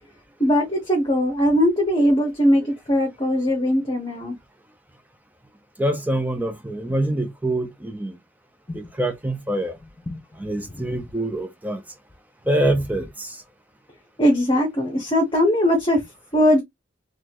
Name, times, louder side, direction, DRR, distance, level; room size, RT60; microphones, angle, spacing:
voice 1, 0.4-4.3 8.7-8.9 10.1-10.2 14.2-16.0 16.3-16.6, equal, 25° left, 1.1 m, -20 dB
voice 2, 5.8-8.2 8.7-9.8 10.4-11.8 12.5-13.4, right 1 dB, 10° right, 0.6 m, -25 dB
4.1 x 3.2 x 2.9 m
head